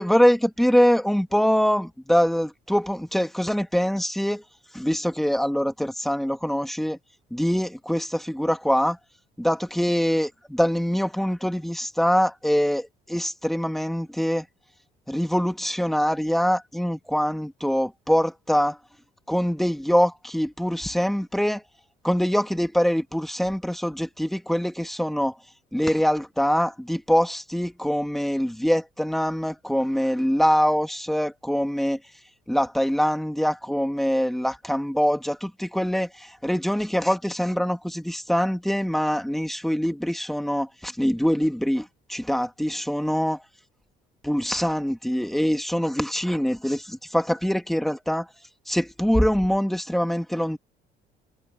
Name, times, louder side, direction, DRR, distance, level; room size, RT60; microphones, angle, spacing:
voice 1, 0.0-4.4 4.7-7.0 7.3-9.0 9.4-14.4 15.1-18.8 19.3-21.6 22.0-25.3 25.7-32.0 32.5-43.4 44.3-48.3 48.7-50.6, equal, ahead, 2.2 m, -24 dB
cardioid pair, 110°, 17 cm